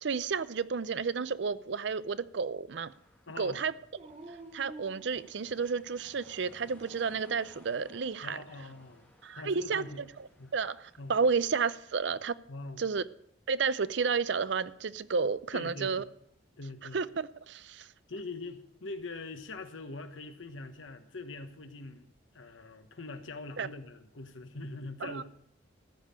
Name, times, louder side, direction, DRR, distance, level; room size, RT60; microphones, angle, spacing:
voice 1, 0.0-2.9 3.4-3.7 4.5-8.4 9.2-9.8 10.5-12.4 12.8-13.0 13.5-16.0 16.9-17.9 23.6-23.7 25.0-25.2, right 5 dB, 65° right, 0.5 m, -31 dB
sound 1, 2.9-11.3, left 1 dB, 10° left, 2.4 m, -60 dB
voice 2, 3.3-3.6 8.2-10.1 10.4-10.5 11.0-11.2 12.5-12.8 15.5-16.0 16.6-17.0 18.1-22.1 22.3-25.2, left 3 dB, 90° left, 1.3 m, -43 dB
Dog, 3.9-5.9 6.5-7.3 9.6-10.4, right 2 dB, 35° right, 1.2 m, -52 dB
14.5 x 5.7 x 8.7 m
head